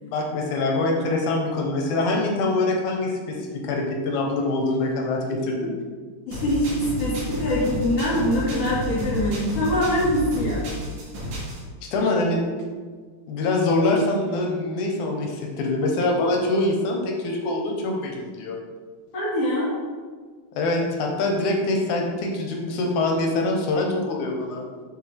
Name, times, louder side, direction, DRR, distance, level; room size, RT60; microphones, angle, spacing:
voice 1, 0.0-5.8 11.8-12.4 13.3-18.6 20.5-24.7, left 2 dB, 75° left, 1 dB, 2.3 m, -24 dB
voice 2, 6.3-10.6 19.1-19.7, left 1 dB, 50° left, -9 dB, 2.9 m, -23 dB
sound 1, 6.3-11.6, equal, 85° right, 3.2 m, -31 dB
6.7 x 6.6 x 3.4 m, 1.5 s
omnidirectional pair, 3.6 m